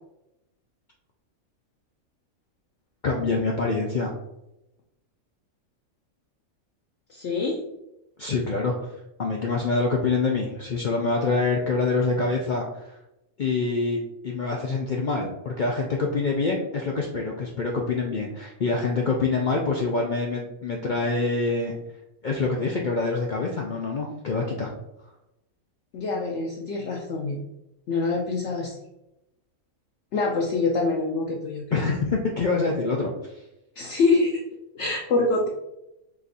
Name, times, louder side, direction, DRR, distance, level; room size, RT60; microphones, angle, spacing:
voice 1, 3.0-4.1 8.2-8.9 9.2-12.9 13.4-21.7 22.2-24.7 31.7-33.3, left 3 dB, 80° left, 0 dB, 0.4 m, -26 dB
voice 2, 7.1-7.6 25.9-27.4 27.9-28.8 30.1-31.9 33.8-34.4 34.7-35.5, left 3 dB, 65° left, -1 dB, 0.8 m, -25 dB
5.1 x 2.5 x 4.0 m, 0.89 s
omnidirectional pair, 1.5 m